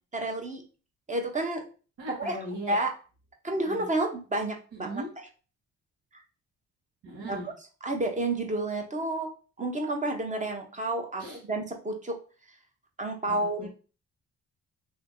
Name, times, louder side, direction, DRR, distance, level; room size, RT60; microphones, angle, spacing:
voice 1, 0.1-0.6 1.1-1.6 2.2-2.4 2.7-2.9 3.4-5.0 7.3-7.4 7.8-9.3 9.6-12.1 13.0-13.7, right 2 dB, 25° right, 3 dB, 0.9 m, -30 dB
voice 2, 2.0-2.8 3.6-3.8 4.8-5.1 7.0-7.5 11.2-11.4 13.2-13.7, right 1 dB, 80° right, -6 dB, 1.5 m, -38 dB
2.8 x 2.8 x 3.7 m, 0.36 s
cardioid pair, 90°, 30 cm